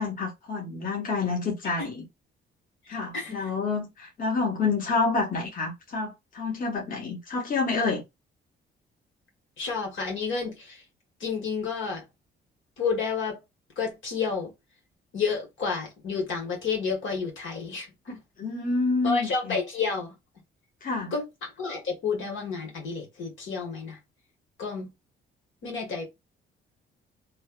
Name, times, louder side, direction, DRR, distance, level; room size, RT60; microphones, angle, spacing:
voice 1, 0.0-2.1 2.9-8.0 18.4-19.6 20.8-21.1, left 4 dB, 45° left, 1.1 m, -28 dB
voice 2, 2.9-3.5 9.6-10.8 11.2-12.0 12.8-13.4 13.8-14.5 15.1-18.2 19.0-20.1 21.1-24.0 24.6-24.9 25.6-26.0, left 5 dB, 75° left, 1.5 m, -30 dB
3.2 x 2.3 x 2.3 m
cardioid pair, 90°, 20 cm